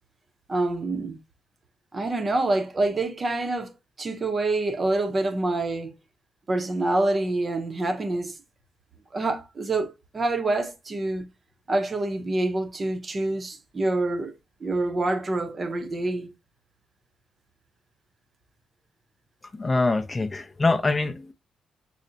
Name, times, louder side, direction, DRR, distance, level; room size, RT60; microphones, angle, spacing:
voice 1, 0.5-1.2 1.9-5.9 6.5-8.4 9.1-11.3 11.7-14.3 14.6-16.3, right 2 dB, 35° right, 0.6 m, -26 dB
voice 2, 19.5-21.3, left 3 dB, 25° left, 0.4 m, -24 dB
5.5 x 2.0 x 2.6 m
cardioid pair, 90°, 0 cm